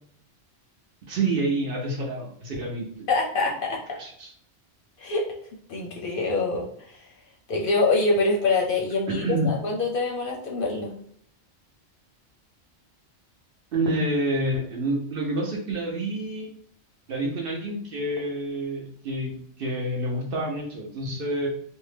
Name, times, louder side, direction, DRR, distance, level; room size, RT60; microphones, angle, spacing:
voice 1, 1.1-3.1 3.9-4.3 9.1-9.5 13.7-16.5 17.1-21.5, right 1 dB, 60° right, 0 dB, 0.8 m, -28 dB
voice 2, 3.1-4.0 5.0-5.2 5.7-7.0 7.5-10.9, left 3 dB, 60° left, 0 dB, 0.7 m, -25 dB
2.7 x 2.1 x 3.2 m, 0.63 s
omnidirectional pair, 1.2 m